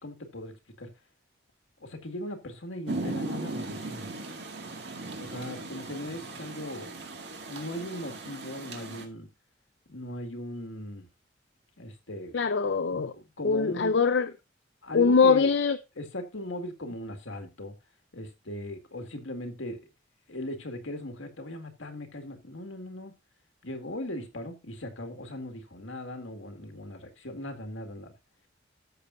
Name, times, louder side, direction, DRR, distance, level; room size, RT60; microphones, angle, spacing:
voice 1, 0.0-0.9 1.8-4.1 5.2-6.9 7.4-9.3 9.9-11.1 11.8-12.4 13.1-14.0 14.8-15.5 16.0-17.7 18.1-19.8 20.3-23.1 23.6-28.1, left 1 dB, 90° left, 2.0 m, -38 dB
Rain, 2.9-9.1, right 2 dB, 60° right, 2.1 m, -38 dB
voice 2, 12.3-13.1 13.4-14.3 14.9-15.8, left 5 dB, 70° left, 0.5 m, -22 dB
13.5 x 6.8 x 2.6 m
head